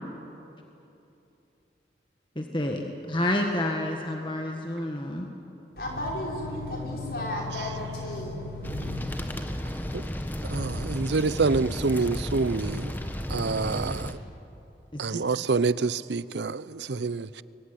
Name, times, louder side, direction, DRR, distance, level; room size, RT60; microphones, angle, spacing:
voice 1, 2.3-5.3 14.9-15.2, left 1 dB, 25° left, 1.6 m, -29 dB
voice 2, 5.8-8.9, left 1 dB, 60° left, 6.0 m, -33 dB
sound 1, 8.6-14.1, equal, 10° left, 1.3 m, -33 dB
voice 3, 10.4-12.9 13.3-14.1 15.0-17.4, right 4 dB, 85° right, 0.6 m, -27 dB
25.0 x 22.5 x 9.9 m
head